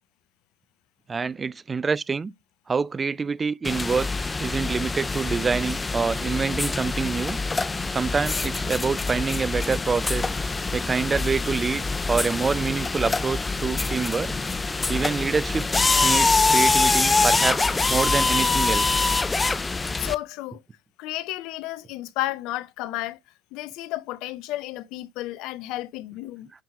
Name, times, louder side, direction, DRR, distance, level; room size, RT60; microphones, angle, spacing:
voice 1, 1.1-2.3 2.7-4.1 4.4-7.4 7.9-10.3 10.7-14.4 14.9-15.7 16.0-19.0, right 5 dB, 25° right, 0.4 m, -26 dB
sound 1, 3.6-20.1, left 3 dB, 20° left, 0.6 m, -24 dB
voice 2, 20.0-20.6 21.0-23.2 23.5-26.5, left 16 dB, 60° left, 0.6 m, -32 dB
10.5 x 4.6 x 4.7 m
hypercardioid pair, 70°, 0 cm